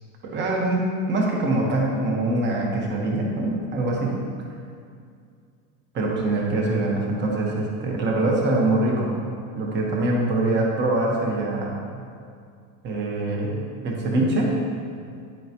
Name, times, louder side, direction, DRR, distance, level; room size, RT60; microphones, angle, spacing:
voice 1, 0.2-4.2 5.9-9.1 9.5-11.8 12.8-14.6, right 2 dB, 30° right, -2 dB, 1.4 m, -24 dB
10.5 x 8.9 x 3.0 m, 2.3 s
cardioid pair, 170°, 38 cm